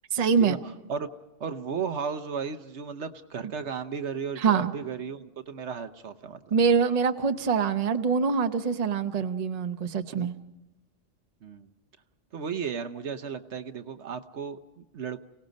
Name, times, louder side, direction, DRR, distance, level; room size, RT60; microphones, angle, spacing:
voice 1, 0.1-0.6 4.4-4.7 6.5-10.3, right 6 dB, 35° right, 7 dB, 0.8 m, -24 dB
voice 2, 1.4-6.4 11.4-11.7 12.3-15.2, right 6 dB, 65° right, 10 dB, 1.1 m, -34 dB
30.0 x 18.0 x 5.2 m, 1.0 s
omnidirectional pair, 1.3 m